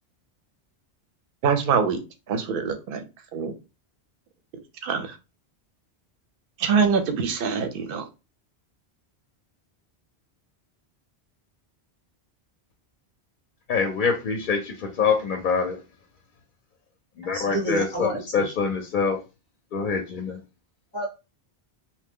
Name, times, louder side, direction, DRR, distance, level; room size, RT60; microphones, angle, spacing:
voice 1, 1.4-2.0 2.3-3.0 3.3-3.6 4.8-5.2 6.6-8.1, right 6 dB, 60° right, 7 dB, 0.7 m, -24 dB
voice 2, 13.7-15.8 17.2-19.2 19.7-20.4, left 5 dB, 60° left, 4 dB, 0.6 m, -25 dB
voice 3, 17.3-18.4 20.9-21.1, right 1 dB, 10° left, -1 dB, 0.7 m, -29 dB
2.9 x 2.1 x 3.5 m, 0.28 s
omnidirectional pair, 1.1 m